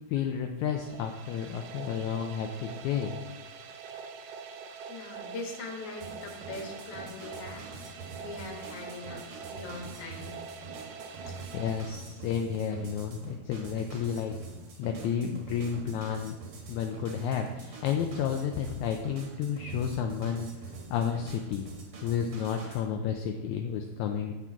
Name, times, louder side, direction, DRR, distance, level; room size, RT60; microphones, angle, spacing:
voice 1, 0.1-3.2 11.2-14.4 14.8-16.4 16.7-20.5 20.9-21.7 22.0-24.3, left 7 dB, 80° left, 4 dB, 1.7 m, -31 dB
sound 1, 0.6-12.6, right 5 dB, 80° right, 1.7 m, -44 dB
voice 2, 4.9-9.2 9.5-10.4 11.3-11.4, left 2 dB, 55° left, 0 dB, 2.2 m, -42 dB
sound 2, 6.0-22.8, right 4 dB, 55° right, 1.7 m, -45 dB
8.3 x 6.2 x 4.5 m, 1.1 s
omnidirectional pair, 3.8 m